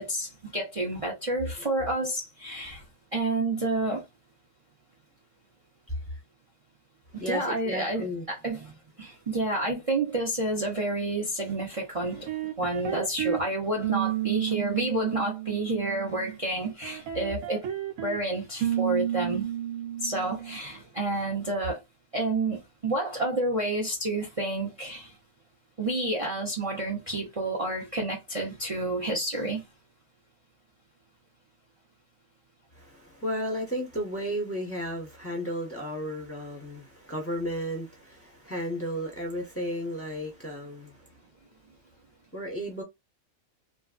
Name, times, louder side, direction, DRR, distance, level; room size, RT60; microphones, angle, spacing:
voice 1, 0.0-2.8 3.1-4.0 7.1-12.3 12.6-17.6 18.0-19.5 20.0-21.8 22.1-25.1 25.8-29.6, right 2 dB, 30° right, 0.7 m, -29 dB
voice 2, 7.2-8.2 32.7-41.0 42.3-42.8, equal, 10° left, 1.0 m, -33 dB
sound 1, 12.0-13.4 13.8-16.4 16.8-18.2 18.6-20.6, right 12 dB, 70° right, 1.1 m, -32 dB
3.2 x 2.5 x 2.4 m
omnidirectional pair, 1.5 m